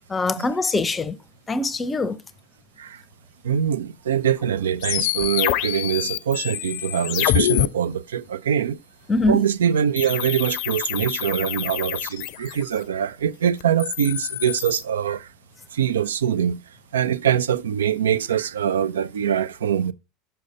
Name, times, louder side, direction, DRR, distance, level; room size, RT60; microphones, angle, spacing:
voice 1, 0.1-1.2 1.5-2.2 9.1-9.4, left 2 dB, 20° left, 0.6 m, -23 dB
voice 2, 3.4-8.8 9.3-15.3 15.7-16.6 16.9-19.9, right 9 dB, 85° right, 0.4 m, -23 dB
sound 1, 4.8-7.7 10.0-12.8 13.6-14.8, left 15 dB, 60° left, 0.5 m, -26 dB
6.4 x 5.7 x 4.0 m
hypercardioid pair, 90°, 0 cm